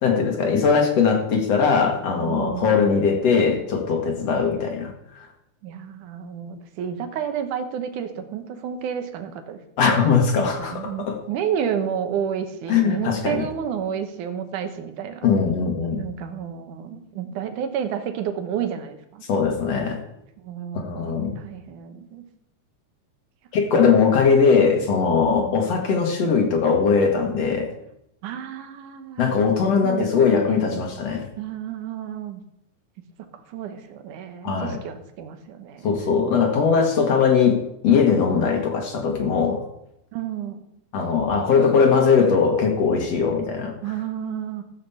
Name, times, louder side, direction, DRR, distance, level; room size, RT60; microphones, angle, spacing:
voice 1, 0.0-5.3 9.8-11.2 12.7-13.4 15.2-16.0 19.3-20.0 20.7-21.4 23.5-27.7 29.2-31.3 34.4-34.8 35.8-39.6 40.9-43.7, left 5 dB, 55° left, 3 dB, 2.6 m, -20 dB
voice 2, 2.2-3.0 5.6-9.6 10.4-15.3 15.9-19.2 20.4-22.2 23.7-23.9 25.4-25.5 28.2-29.3 29.8-30.1 30.4-30.8 31.4-32.4 33.3-35.9 40.1-40.6 43.8-44.6, right 8 dB, 75° right, 7 dB, 2.5 m, -31 dB
14.5 x 6.4 x 6.9 m, 0.81 s
omnidirectional pair, 3.8 m